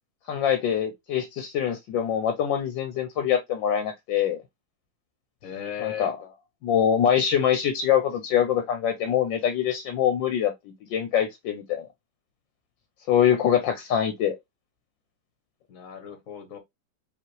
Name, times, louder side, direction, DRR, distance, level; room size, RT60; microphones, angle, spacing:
voice 1, 0.3-4.4 5.8-6.1 6.6-10.5 10.9-11.9 13.1-14.4, left 9 dB, 75° left, 1.4 m, -24 dB
voice 2, 5.4-6.1 15.7-16.6, left 10 dB, 50° left, 1.2 m, -36 dB
4.9 x 3.1 x 3.0 m
omnidirectional pair, 2.2 m